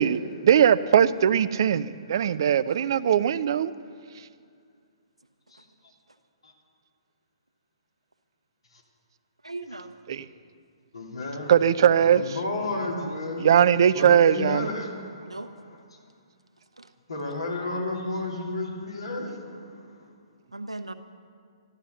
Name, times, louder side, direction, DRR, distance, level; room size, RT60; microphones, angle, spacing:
voice 1, 0.0-3.7 10.1-10.2 11.5-12.4 13.4-14.7, right 9 dB, 50° right, 15 dB, 0.5 m, -20 dB
voice 2, 9.4-9.9 15.2-15.5 16.8-16.9 20.5-20.9, right 2 dB, 85° right, 7 dB, 1.0 m, -37 dB
voice 3, 10.9-11.5 11.9-13.6 13.9-15.4 17.1-20.1, left 2 dB, 70° left, -1 dB, 3.2 m, -32 dB
13.0 x 13.0 x 6.9 m, 2.1 s
figure-of-eight pair, 125°, 3 cm